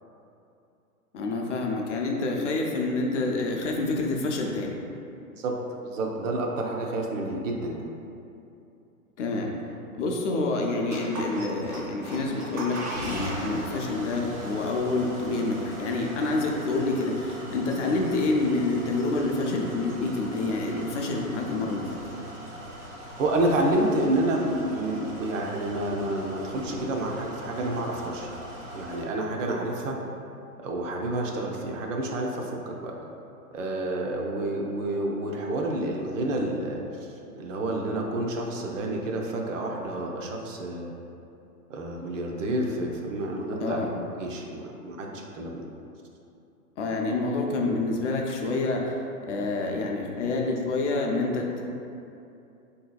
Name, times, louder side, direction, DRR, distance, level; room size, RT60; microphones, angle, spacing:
voice 1, 1.1-4.8 9.2-9.5 9.9-22.0 43.6-43.9 46.8-48.9 49.3-51.6, left 2 dB, 50° left, 0 dB, 0.5 m, -27 dB
voice 2, 5.9-7.8 23.2-28.3 28.7-30.0 30.6-33.0 33.5-37.1 37.3-40.9 41.7-43.9 44.2-45.7, right 1 dB, 55° right, 0 dB, 0.5 m, -29 dB
Vintage Cadillac Turn On Off Engine, 10.9-29.0, right 1 dB, 70° right, 1.4 m, -40 dB
3.7 x 2.7 x 2.3 m, 2.7 s
hypercardioid pair, 125°, 46 cm